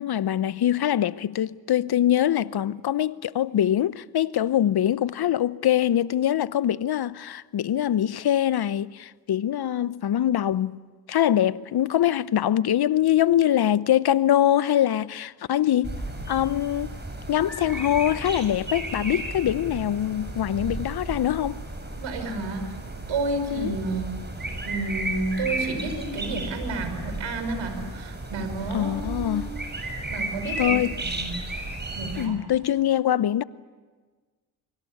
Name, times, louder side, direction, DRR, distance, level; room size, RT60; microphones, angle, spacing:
voice 1, 0.0-10.8 11.1-15.9 16.3-17.0 17.3-21.6 23.5-23.7 28.7-29.5 30.6-30.9 32.2-33.4, left 11 dB, 55° left, 0.9 m, -23 dB
sound 1, 15.8-32.3, right 2 dB, 20° right, 7.1 m, -34 dB
voice 2, 21.9-22.6 23.1-24.2 24.6-29.4 30.1-31.3 31.9-32.4, right 2 dB, 70° right, 5.6 m, -31 dB
24.5 x 24.0 x 8.6 m
hypercardioid pair, 45°, 46 cm